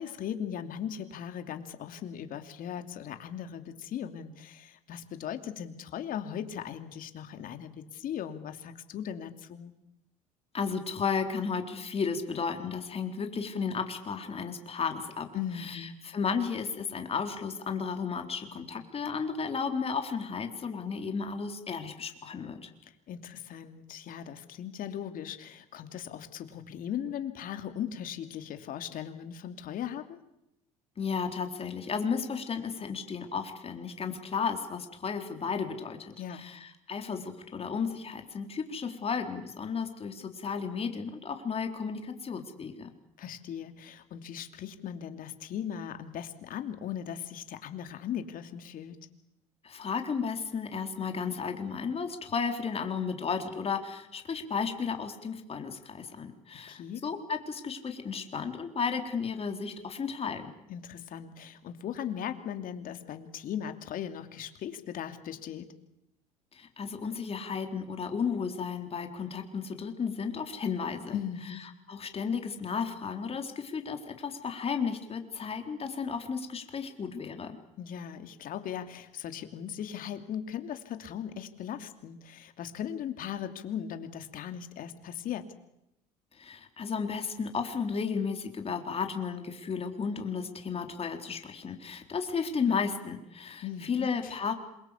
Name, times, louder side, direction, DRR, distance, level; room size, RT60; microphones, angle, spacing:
voice 1, 0.0-9.7 15.3-16.0 22.8-30.2 36.2-36.5 43.2-49.0 56.7-57.0 60.7-65.7 71.1-71.6 77.8-85.5 93.6-94.3, left 9 dB, 60° left, 8 dB, 2.8 m, -38 dB
voice 2, 10.5-15.3 15.5-22.7 31.0-42.9 49.6-60.5 66.5-71.2 71.9-77.6 86.4-94.5, left 5 dB, 35° left, 5 dB, 4.0 m, -33 dB
27.0 x 23.0 x 8.4 m, 0.83 s
hypercardioid pair, 75°, 17 cm